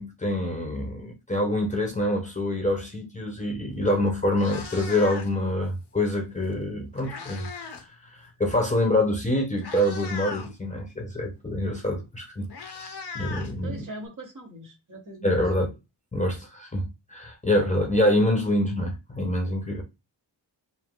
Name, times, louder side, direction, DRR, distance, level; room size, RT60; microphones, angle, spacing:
voice 1, 0.0-7.5 7.8-12.9 13.1-13.8 15.2-15.7 16.1-19.8, left 1 dB, 15° left, 0.9 m, -26 dB
Meow, 3.7-3.9 4.2-5.5 6.6-7.9 8.2-8.4 9.1-9.2 9.6-10.5 11.8-11.9 12.2-14.1, left 5 dB, 65° left, 0.9 m, -39 dB
voice 2, 13.6-15.7, right 1 dB, 45° right, 1.7 m, -41 dB
5.0 x 2.0 x 3.8 m
wide cardioid pair, 120°, 43 cm